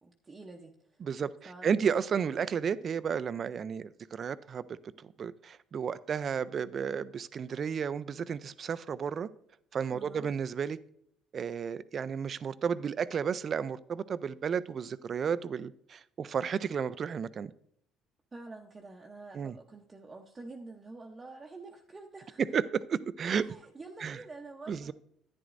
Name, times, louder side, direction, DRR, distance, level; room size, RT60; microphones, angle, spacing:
voice 1, 0.0-1.0 1.4-1.8 9.9-10.3 18.3-22.5 23.3-24.9, right 3 dB, 20° right, 0.8 m, -48 dB
voice 2, 1.6-9.3 9.7-10.8 11.3-17.5 19.3-19.5 22.4-23.4 24.0-24.2 24.7-24.9, right 7 dB, 40° right, 0.4 m, -32 dB
11.0 x 9.9 x 2.6 m
cardioid pair, 110°, 0 cm